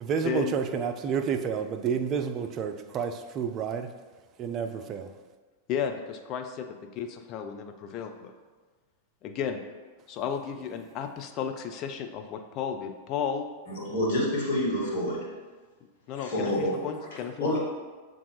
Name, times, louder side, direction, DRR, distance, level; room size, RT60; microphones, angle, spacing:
voice 1, 0.0-3.9 4.4-5.1, right 7 dB, 35° right, 7 dB, 0.3 m, -30 dB
voice 2, 5.7-6.7 6.9-8.3 9.2-9.6 10.1-13.5 16.1-17.6, left 7 dB, 35° left, 6 dB, 0.4 m, -33 dB
voice 3, 13.7-15.4 16.1-17.6, left 1 dB, 55° left, -3 dB, 1.2 m, -29 dB
6.9 x 2.3 x 3.2 m, 1.4 s
figure-of-eight pair, 90°, 0 cm